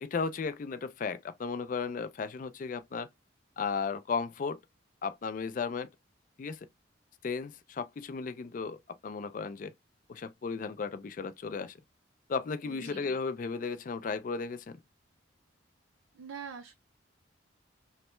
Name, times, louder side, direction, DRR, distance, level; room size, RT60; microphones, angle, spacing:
voice 1, 0.0-3.1 3.6-4.6 5.0-5.9 6.4-6.6 7.2-9.7 10.1-11.8 12.3-14.8, left 5 dB, 40° left, 0.3 m, -35 dB
voice 2, 12.6-13.0 16.1-16.7, right 6 dB, 85° right, 0.5 m, -44 dB
3.1 x 2.1 x 2.9 m
head